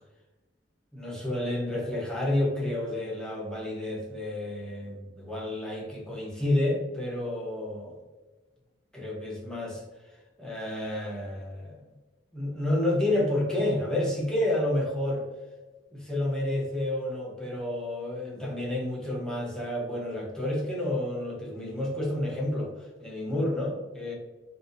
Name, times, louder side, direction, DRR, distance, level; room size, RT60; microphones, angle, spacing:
voice 1, 0.9-7.9 8.9-9.8 10.4-11.8 12.3-15.3 15.9-22.7 23.0-24.1, left 1 dB, 5° left, -4 dB, 0.9 m, -30 dB
4.0 x 2.7 x 2.6 m, 1.2 s
head